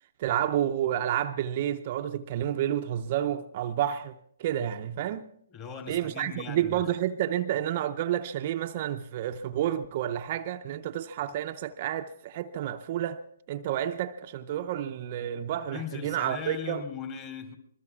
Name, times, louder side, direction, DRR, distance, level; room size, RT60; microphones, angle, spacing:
voice 1, 0.2-5.3 5.9-13.2 13.5-16.8, right 11 dB, 40° right, 0.5 m, -30 dB
voice 2, 5.5-6.9 15.7-17.6, left 7 dB, 30° left, 2.7 m, -39 dB
25.0 x 21.0 x 2.4 m
figure-of-eight pair, 135°, 0 cm